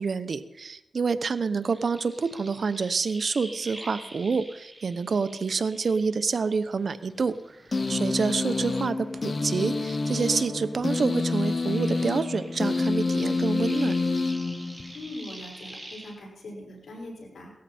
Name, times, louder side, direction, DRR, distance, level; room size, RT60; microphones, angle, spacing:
voice 1, 0.0-7.6 7.9-14.0, right 5 dB, 65° right, 12 dB, 0.9 m, -27 dB
sound 1, 1.4-6.7 7.1-10.4 10.7-16.1, right 1 dB, 10° right, 5.2 m, -46 dB
sound 2, 7.7-15.1, left 3 dB, 50° left, 0.8 m, -28 dB
voice 2, 14.9-17.5, left 1 dB, 90° left, -1 dB, 5.5 m, -41 dB
18.0 x 14.0 x 4.4 m, 0.92 s
cardioid pair, 65°, 0 cm